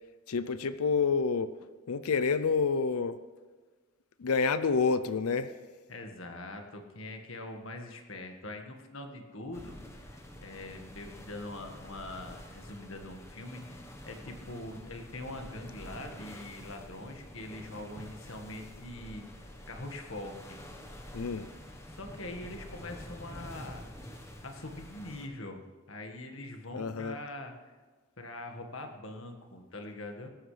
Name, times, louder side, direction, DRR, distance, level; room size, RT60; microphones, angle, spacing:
voice 1, 0.3-1.5 1.9-3.2 4.2-5.5 21.1-21.5 26.7-27.2, left 5 dB, 90° left, 13 dB, 0.5 m, -28 dB
voice 2, 5.9-20.6 21.9-23.9 24.4-25.6 25.9-27.7 28.2-30.3, left 2 dB, 65° left, 4 dB, 1.7 m, -43 dB
sound 1, 9.5-25.3, equal, 10° left, 1.1 m, -48 dB
18.0 x 14.0 x 3.4 m, 1.4 s
head